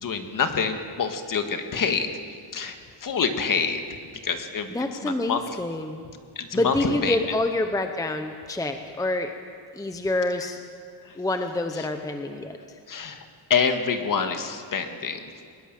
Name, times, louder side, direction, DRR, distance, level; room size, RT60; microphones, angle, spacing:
voice 1, 0.0-2.1 2.5-3.8 4.2-4.7 5.0-5.6 6.4-7.2 11.0-11.2 12.9-13.2 13.5-15.2, left 6 dB, 40° left, 6 dB, 1.8 m, -26 dB
voice 2, 4.7-6.0 6.5-9.3 9.7-10.6 11.2-12.8, left 2 dB, 5° left, 6 dB, 0.9 m, -27 dB
21.5 x 20.5 x 7.6 m, 2.2 s
cardioid pair, 155°, 48 cm